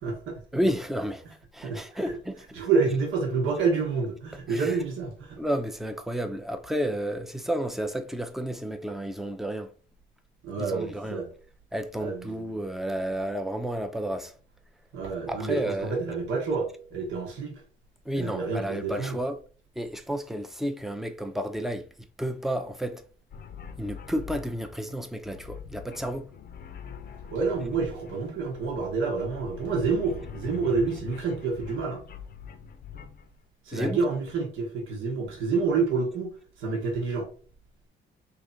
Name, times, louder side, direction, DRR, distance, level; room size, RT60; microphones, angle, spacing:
voice 1, 0.0-0.4 1.6-1.8 2.5-5.4 10.4-11.3 12.0-12.4 14.9-17.6 18.1-19.2 27.3-32.0 33.6-36.3 36.6-37.3, right 4 dB, 80° right, 1.2 m, -28 dB
voice 2, 0.5-1.2 1.5-2.4 4.5-4.8 5.4-9.7 10.6-11.2 11.7-14.3 15.3-16.0 18.1-19.4 19.8-23.0 23.8-26.3 33.7-34.0, equal, ahead, 0.5 m, -31 dB
sound 1, 23.3-33.4, left 7 dB, 50° left, 0.6 m, -43 dB
3.3 x 2.9 x 3.8 m
cardioid pair, 90°, 20 cm